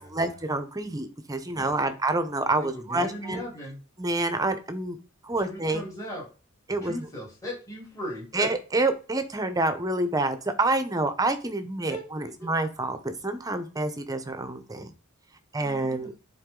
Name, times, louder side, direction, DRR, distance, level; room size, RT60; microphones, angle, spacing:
voice 1, 0.0-3.4 4.0-5.0 5.2-5.9 6.7-6.9 8.3-14.9 15.5-16.1, right 2 dB, 15° right, 9 dB, 0.8 m, -28 dB
voice 2, 2.6-3.8 5.4-6.3 6.8-8.5 11.9-12.0 12.4-12.5 15.6-16.1, equal, 15° left, -4 dB, 3.1 m, -37 dB
9.8 x 4.0 x 3.8 m, 0.34 s
head